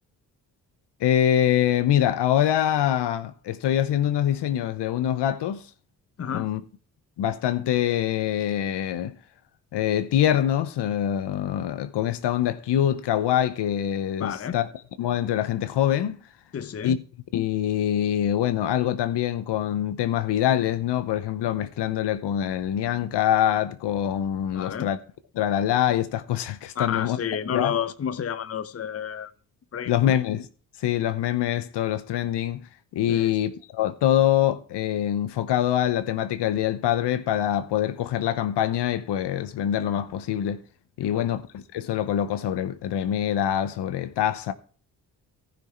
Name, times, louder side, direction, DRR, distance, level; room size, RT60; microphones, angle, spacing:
voice 1, 1.0-5.6 6.3-6.6 7.2-9.1 9.7-14.6 15.0-16.2 16.8-17.0 17.3-25.0 25.3-27.2 27.5-27.7 29.9-30.5 30.8-32.7 32.9-40.6 41.0-44.5, left 11 dB, 70° left, 1.0 m, -24 dB
voice 2, 6.2-6.5 14.2-14.6 16.5-17.0 24.5-24.9 26.7-29.3 29.7-30.2 33.1-33.3 41.0-41.3, left 8 dB, 35° left, 0.8 m, -30 dB
14.5 x 6.0 x 4.5 m
hypercardioid pair, 45°, 42 cm